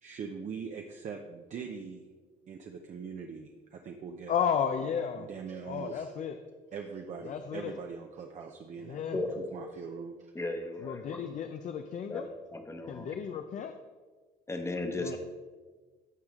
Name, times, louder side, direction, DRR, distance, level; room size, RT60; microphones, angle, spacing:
voice 1, 0.0-2.0 2.5-4.3 5.2-6.1 6.7-9.3 9.5-10.3, right 6 dB, 45° right, 3 dB, 0.7 m, -42 dB
voice 2, 4.3-5.3 5.7-6.4 7.2-7.7 8.9-9.2 10.8-12.3 12.9-13.7 15.0-15.2, left 7 dB, 50° left, 7 dB, 0.5 m, -33 dB
voice 3, 9.1-9.5 10.3-11.2 12.1-12.2 12.5-13.2 14.5-15.2, left 2 dB, 15° left, 5 dB, 1.1 m, -35 dB
15.0 x 5.0 x 3.6 m, 1.4 s
cardioid pair, 110°, 17 cm